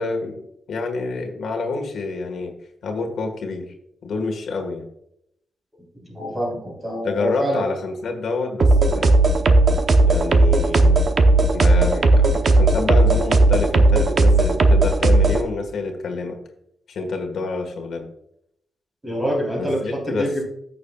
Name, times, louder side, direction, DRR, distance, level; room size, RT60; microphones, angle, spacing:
voice 1, 0.0-2.5 2.8-3.7 4.0-4.9 7.0-9.2 10.1-11.0 11.5-16.4 16.9-18.1 19.6-20.4, left 3 dB, 65° left, 3 dB, 1.5 m, -28 dB
voice 2, 6.1-7.6 19.0-20.4, equal, 15° right, -1 dB, 3.5 m, -25 dB
sound 1, 8.6-15.4, right 2 dB, 40° right, 0.8 m, -15 dB
14.0 x 6.7 x 2.3 m, 0.74 s
wide cardioid pair, 175°, 0 cm